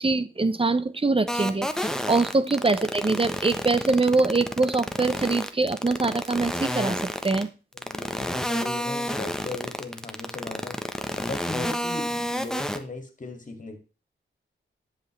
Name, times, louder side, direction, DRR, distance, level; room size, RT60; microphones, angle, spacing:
voice 1, 0.0-7.5, right 3 dB, 25° right, 13 dB, 0.8 m, -24 dB
sound 1, 1.3-7.4 7.8-12.8, equal, 5° left, 1.1 m, -29 dB
voice 2, 7.7-13.8, left 3 dB, 40° left, 5 dB, 2.4 m, -38 dB
11.0 x 7.5 x 3.3 m, 0.33 s
wide cardioid pair, 85°, 21 cm